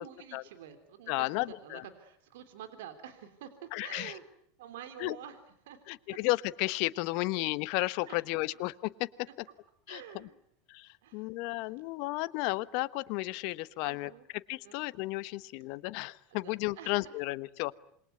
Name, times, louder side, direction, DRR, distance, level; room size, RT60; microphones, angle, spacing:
voice 1, 0.0-4.2 4.6-5.4 5.6-5.8 6.1-6.2 7.1-7.3 8.1-8.2 8.5-8.6 9.9-10.4 11.0-11.8 13.8-14.3 14.6-14.9 15.7-15.8 16.4-17.2, right 9 dB, 70° right, 9 dB, 3.4 m, -48 dB
voice 2, 1.1-1.8 3.7-4.1 5.0-5.2 5.9-8.9 9.9-10.0 10.7-14.1 14.5-17.7, left 21 dB, 60° left, 15 dB, 1.1 m, -33 dB
27.5 x 22.5 x 9.6 m, 0.67 s
hypercardioid pair, 100°, 0 cm